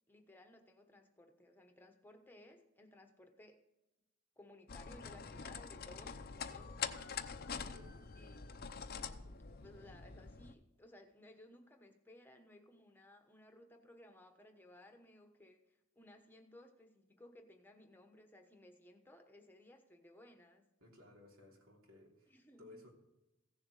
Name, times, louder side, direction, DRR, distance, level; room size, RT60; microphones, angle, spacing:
voice 1, 0.1-3.6 4.4-7.2 8.1-8.4 9.6-20.6 22.3-22.8, left 1 dB, 10° left, 5 dB, 1.1 m, -60 dB
sound 1, 4.7-10.5, left 6 dB, 45° left, 0.6 m, -45 dB
voice 2, 7.6-8.0 8.9-9.0 20.8-22.9, left 2 dB, 70° right, 0 dB, 3.1 m, -60 dB
16.0 x 7.1 x 4.8 m, 0.96 s
head